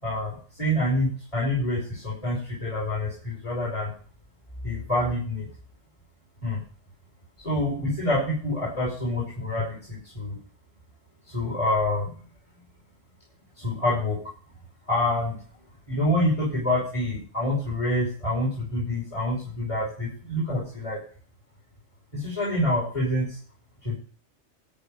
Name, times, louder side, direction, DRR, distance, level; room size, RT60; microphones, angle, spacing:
voice 1, 0.0-3.9 4.6-5.5 6.4-6.6 7.4-10.4 11.3-12.1 13.6-14.2 14.9-15.3 15.9-21.0 22.1-23.4 23.8-23.9, left 1 dB, 25° left, -7 dB, 5.5 m, -27 dB
13.5 x 5.3 x 9.2 m, 0.42 s
omnidirectional pair, 1.3 m